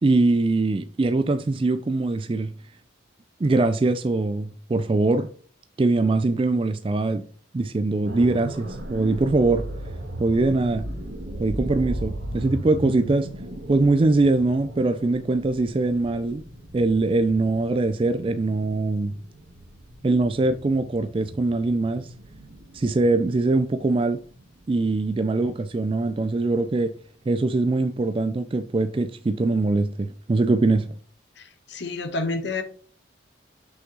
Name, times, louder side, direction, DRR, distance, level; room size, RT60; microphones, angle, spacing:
voice 1, 0.0-2.5 3.4-5.3 5.8-7.2 7.5-9.7 10.2-10.9 11.4-13.3 13.7-16.4 16.7-19.1 20.0-22.1 22.7-24.2 24.7-26.9 27.3-30.9, right 3 dB, 25° right, 0.3 m, -22 dB
sound 1, 8.0-25.9 26.3-26.5, right 1 dB, 70° right, 1.6 m, -37 dB
voice 2, 31.4-32.6, left 3 dB, 60° left, 1.1 m, -29 dB
6.0 x 5.8 x 3.8 m
head